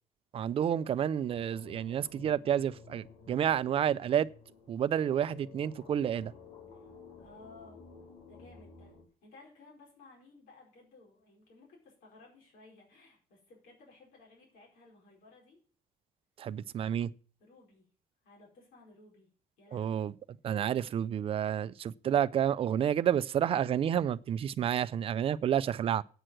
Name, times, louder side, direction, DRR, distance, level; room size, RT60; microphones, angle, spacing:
voice 1, 0.3-4.3 4.7-6.3 16.4-17.1 19.7-20.1 20.4-26.0, right 9 dB, 40° right, 0.4 m, -30 dB
sound 1, 1.3-9.0, left 6 dB, 50° left, 3.7 m, -53 dB
voice 2, 6.7-7.8 8.3-8.9 9.2-15.6 17.4-17.9 18.2-19.3 19.6-20.1, left 3 dB, 75° left, 4.8 m, -57 dB
8.8 x 6.5 x 7.6 m
cardioid pair, 165°, 15 cm